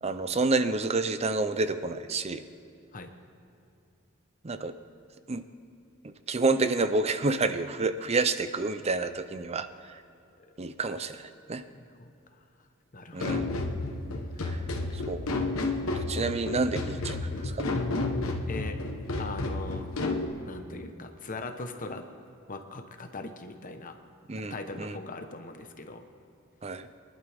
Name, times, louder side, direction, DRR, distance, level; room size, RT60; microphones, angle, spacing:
voice 1, 0.0-2.4 4.4-4.7 5.3-5.4 6.3-9.7 10.6-11.2 11.5-11.6 13.1-13.6 14.9-15.3 16.0-17.2 17.4-17.7 24.3-25.0 26.6-26.9, right 3 dB, 30° right, 11 dB, 0.6 m, -28 dB
voice 2, 11.7-12.1 12.9-13.3 14.7-15.9 18.5-18.8 19.2-19.9 20.5-22.0 22.5-24.0 24.4-26.1, left 3 dB, 40° left, 6 dB, 1.0 m, -40 dB
sound 1, 13.2-20.2, left 2 dB, 75° left, 1.2 m, -31 dB
23.5 x 11.5 x 3.5 m, 2.7 s
head